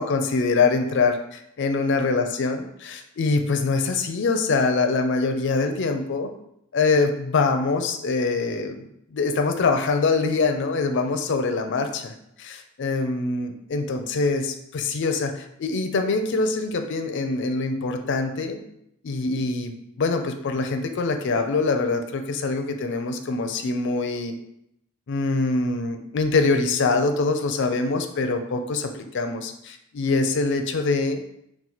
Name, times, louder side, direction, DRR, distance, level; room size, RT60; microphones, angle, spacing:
voice 1, 0.0-6.3 6.7-18.6 19.0-19.7 20.0-24.3 25.1-31.2, left 3 dB, 60° left, 6 dB, 0.4 m, -24 dB
4.3 x 2.3 x 3.9 m, 0.77 s
head